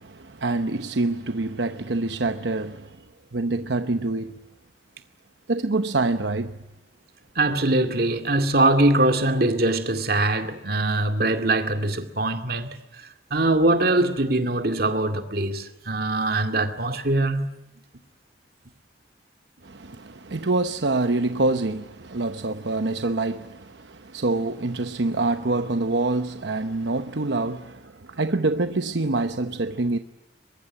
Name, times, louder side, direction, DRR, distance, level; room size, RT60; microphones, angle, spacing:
voice 1, 0.0-3.0 3.3-4.4 5.5-6.6 19.6-30.0, right 2 dB, 70° right, 0.9 m, -26 dB
voice 2, 7.4-12.7 13.3-17.5, right 2 dB, 55° right, 2.2 m, -22 dB
23.0 x 22.5 x 9.8 m
head